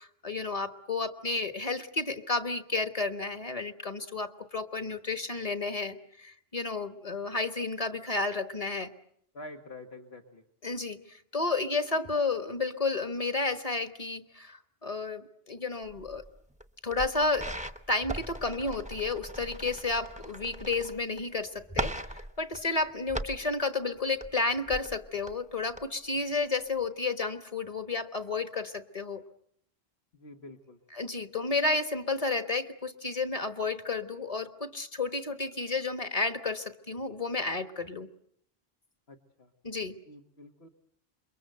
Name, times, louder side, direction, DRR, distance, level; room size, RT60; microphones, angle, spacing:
voice 1, 0.0-8.9 10.6-16.2 16.8-17.5 17.9-29.2 30.9-38.1 39.6-40.0, left 3 dB, 35° left, 8 dB, 1.5 m, -32 dB
voice 2, 9.3-10.4 30.1-30.8 39.1-39.5 40.1-40.7, left 2 dB, 75° left, 2 dB, 1.9 m, -47 dB
sound 1, 15.9-16.6 16.9-21.2 21.5-23.5 24.0-25.3 25.7-25.8 26.3-26.4, right 1 dB, 5° right, 0.9 m, -39 dB
28.0 x 23.5 x 7.9 m, 0.70 s
omnidirectional pair, 1.1 m